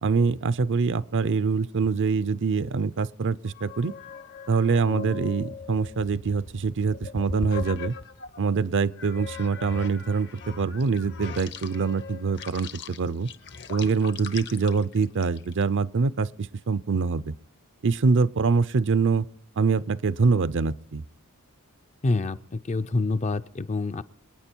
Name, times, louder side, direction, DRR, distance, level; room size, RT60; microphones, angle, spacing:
voice 1, 0.0-3.9 4.5-7.9 8.4-13.3 13.7-17.3 17.8-19.3 19.6-21.0, right 4 dB, 55° right, 0.5 m, -24 dB
sound 1, 3.5-8.4 9.0-15.6, left 4 dB, 55° left, 0.9 m, -39 dB
voice 2, 22.0-24.0, left 3 dB, 30° left, 0.5 m, -27 dB
27.5 x 9.5 x 4.5 m
head